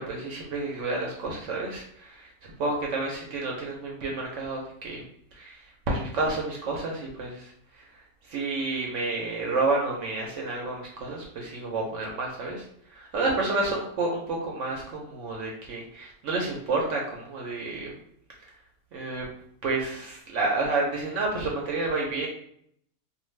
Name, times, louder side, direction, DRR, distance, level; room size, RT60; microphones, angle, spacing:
voice 1, 0.0-5.0 5.3-7.5 7.8-7.9 8.2-12.6 12.9-17.9 18.9-19.3 19.6-22.3, right 3 dB, 65° right, -2 dB, 0.8 m, -30 dB
2.4 x 2.2 x 3.1 m, 0.69 s
omnidirectional pair, 1.5 m